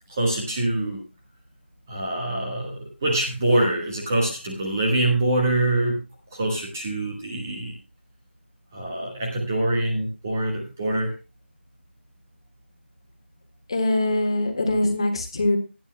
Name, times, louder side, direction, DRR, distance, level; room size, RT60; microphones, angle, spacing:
voice 1, 0.1-1.0 1.9-6.0 6.3-7.7 8.7-11.1, right 1 dB, 15° right, -1 dB, 1.3 m, -24 dB
voice 2, 13.7-15.6, left 2 dB, 25° left, 4 dB, 1.8 m, -23 dB
19.0 x 9.7 x 2.2 m, 0.29 s
figure-of-eight pair, 180°, 7 cm